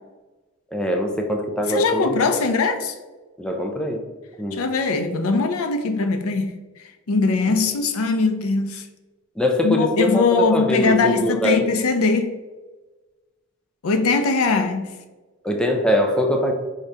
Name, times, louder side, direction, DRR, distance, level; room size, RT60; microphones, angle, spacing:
voice 1, 0.7-2.2 3.4-4.0 4.4-4.6 7.5-7.6 9.4-11.6 15.4-16.5, left 1 dB, 5° left, 0.4 m, -22 dB
voice 2, 1.7-2.9 4.5-6.5 7.1-8.8 9.6-12.3 13.8-14.9, left 3 dB, 90° left, 0.5 m, -21 dB
4.8 x 2.8 x 3.3 m
head